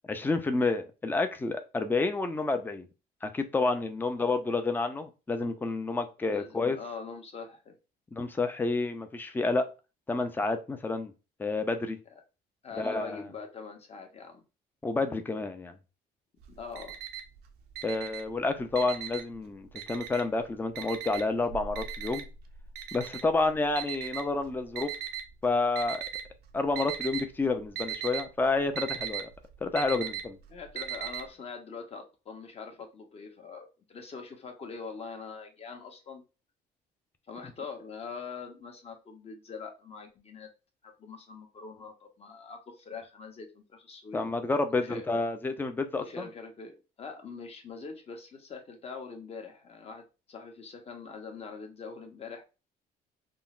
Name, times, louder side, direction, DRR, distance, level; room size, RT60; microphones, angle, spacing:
voice 1, 0.1-2.9 3.2-6.8 8.1-9.7 10.1-11.1 11.4-12.0 12.8-13.2 14.8-15.8 17.8-22.3 22.9-24.9 25.4-26.0 26.5-29.3 29.6-30.4 44.1-46.3, left 3 dB, 10° left, 0.4 m, -29 dB
voice 2, 6.3-7.7 12.6-14.4 16.5-17.0 30.5-36.2 37.3-40.5 40.8-44.2 44.7-45.1 46.0-52.5, left 5 dB, 35° left, 0.8 m, -43 dB
Alarm, 16.4-17.4 17.7-19.4 19.8-20.4 20.8-25.2 25.8-26.4 26.6-27.3 27.5-31.2, right 10 dB, 70° right, 0.5 m, -37 dB
3.7 x 2.0 x 2.4 m
cardioid pair, 110°, 17 cm